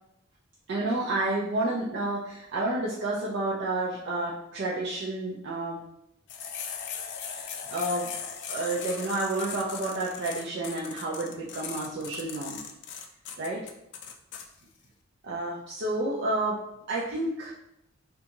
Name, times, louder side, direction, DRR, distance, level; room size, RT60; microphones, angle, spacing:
voice 1, 0.7-5.8 7.3-8.1 8.5-12.6 13.4-13.7 15.2-17.5, right 2 dB, 60° right, -5 dB, 0.4 m, -30 dB
sound 1, 6.3-14.5, left 7 dB, 60° left, 0.3 m, -38 dB
2.6 x 2.3 x 2.8 m, 0.79 s
head